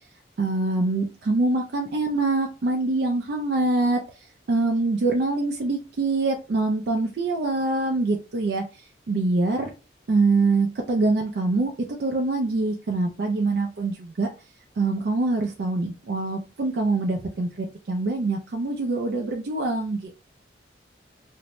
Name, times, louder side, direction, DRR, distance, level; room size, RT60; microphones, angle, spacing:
voice 1, 0.4-4.0 4.5-8.6 9.1-9.7 10.1-11.7 12.0-14.3 14.8-20.1, right 3 dB, 60° right, 1 dB, 0.4 m, -24 dB
2.5 x 2.1 x 2.9 m, 0.32 s
head